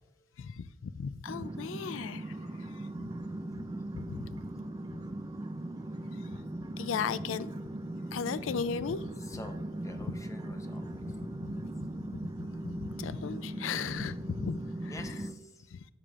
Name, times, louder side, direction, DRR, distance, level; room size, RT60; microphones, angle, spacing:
voice 1, 0.4-2.9 3.5-3.6 3.9-4.5 4.9-5.0 6.1-6.4 6.8-7.5 8.1-9.1 10.9-15.2 15.7-15.9, left 6 dB, 85° left, 0.4 m, -37 dB
sound 1, 1.3-15.3, right 1 dB, 20° right, 0.4 m, -39 dB
voice 2, 9.3-11.1 14.9-15.7, left 2 dB, 15° left, 0.7 m, -48 dB
13.0 x 6.8 x 2.4 m
head